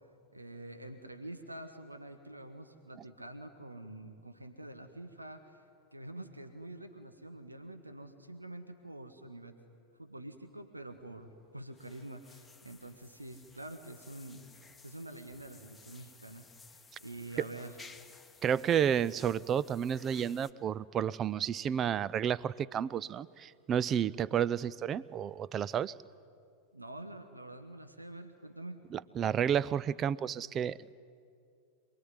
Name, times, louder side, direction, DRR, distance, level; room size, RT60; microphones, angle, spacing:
voice 1, 0.3-5.6 5.9-9.5 10.0-16.5 17.0-17.8 26.7-28.8, right 1 dB, 85° right, 7 dB, 1.6 m, -46 dB
sound 1, 10.9-20.5, left 4 dB, 10° left, 1.3 m, -57 dB
voice 2, 18.4-25.9 28.9-30.9, right 9 dB, 30° right, 19 dB, 0.5 m, -31 dB
27.0 x 21.0 x 9.7 m, 2.4 s
figure-of-eight pair, 90°, 0 cm